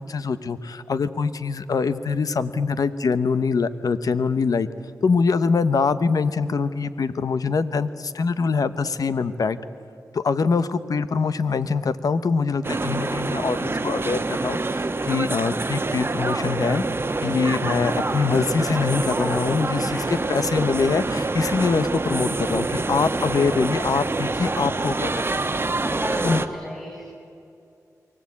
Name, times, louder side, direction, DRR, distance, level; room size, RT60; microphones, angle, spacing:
voice 1, 0.0-4.7 5.0-9.6 10.1-16.8 17.2-25.5 26.2-26.4, left 5 dB, 75° left, 13 dB, 1.0 m, -24 dB
sound 1, 12.6-26.5, right 3 dB, 40° right, 1.1 m, -26 dB
voice 2, 19.9-20.3 25.8-27.0, equal, ahead, -2 dB, 6.8 m, -33 dB
24.0 x 16.5 x 8.6 m, 2.5 s
cardioid pair, 50°, 6 cm